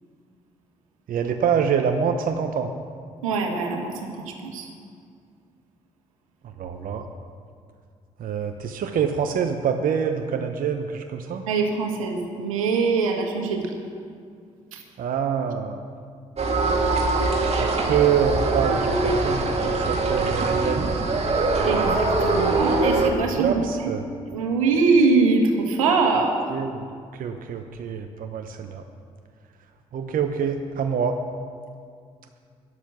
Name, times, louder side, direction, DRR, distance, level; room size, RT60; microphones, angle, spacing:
voice 1, 1.1-2.7 6.6-7.1 8.2-11.4 15.0-15.8 17.6-21.0 23.3-24.0 26.5-26.8 27.1-28.8 29.9-31.2, right 7 dB, 55° right, 5 dB, 1.0 m, -26 dB
voice 2, 3.2-4.7 11.5-13.7 14.7-14.8 21.6-23.9 24.3-26.3, right 4 dB, 85° right, 2 dB, 1.6 m, -23 dB
sound 1, 16.4-23.1, right 3 dB, 40° right, 2.5 m, -22 dB
12.5 x 11.5 x 6.2 m, 2.2 s
hypercardioid pair, 45°, 17 cm